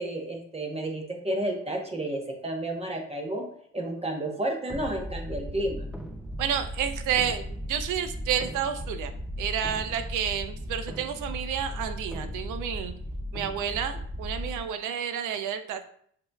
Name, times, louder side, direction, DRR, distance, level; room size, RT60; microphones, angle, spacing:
voice 1, 0.0-3.5 3.7-5.9, right 1 dB, 20° right, 2 dB, 1.0 m, -31 dB
sound 1, 4.7-14.6, equal, 5° right, 0.4 m, -36 dB
voice 2, 6.4-9.1 9.4-12.9 13.3-15.8, right 8 dB, 90° right, 9 dB, 0.6 m, -30 dB
7.5 x 2.8 x 2.3 m, 0.63 s
cardioid pair, 90°, 30 cm